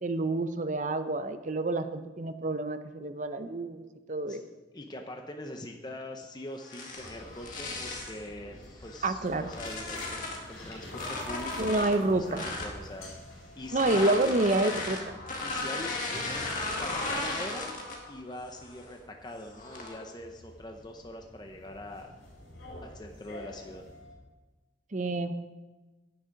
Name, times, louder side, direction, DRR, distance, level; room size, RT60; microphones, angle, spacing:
voice 1, 0.0-4.4 9.0-9.5 11.6-12.5 13.7-15.0 24.9-25.3, right 2 dB, 40° right, 9 dB, 0.6 m, -28 dB
voice 2, 4.7-10.2 10.5-14.3 15.4-16.5 16.8-17.8 18.1-22.1 22.8-23.8, left 1 dB, 20° left, 3 dB, 0.7 m, -43 dB
sound 1, 6.6-8.2 8.8-10.5 10.9-12.8 13.7-18.1 18.5-18.9 19.5-20.0, left 2 dB, 40° left, 1.8 m, -36 dB
sound 2, 7.0-24.2, left 1 dB, 85° left, 3.8 m, -48 dB
9.8 x 9.2 x 5.2 m, 1.2 s
head